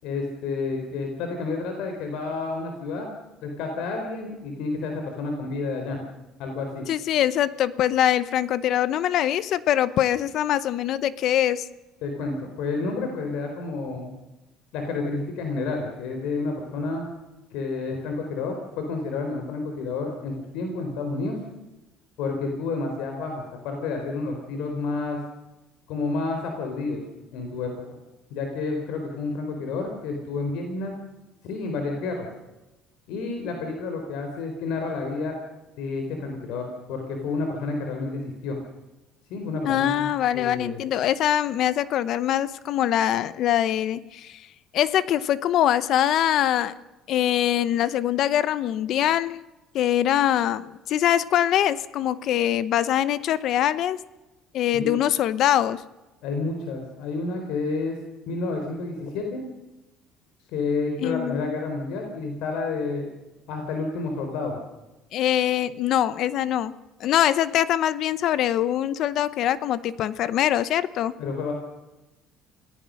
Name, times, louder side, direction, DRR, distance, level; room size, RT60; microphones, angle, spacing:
voice 1, 0.0-3.1 3.4-6.0 6.4-6.8 12.0-14.1 14.7-17.1 17.5-21.4 22.2-25.2 25.9-27.0 27.3-27.8 28.3-30.9 31.4-32.3 33.1-35.3 35.8-38.6 39.3-40.1 40.3-40.8 54.7-54.9 56.2-58.0 58.3-59.4 60.5-63.1 63.5-64.6 71.2-71.5, left 3 dB, 75° left, 3 dB, 4.3 m, -30 dB
voice 2, 6.9-11.7 39.7-44.4 44.7-46.7 47.1-49.4 49.7-54.0 54.5-55.8 61.0-61.5 65.1-66.7 67.0-71.1, left 11 dB, 55° left, 16 dB, 0.8 m, -23 dB
27.0 x 18.0 x 6.5 m, 1.1 s
cardioid pair, 150°, 0 cm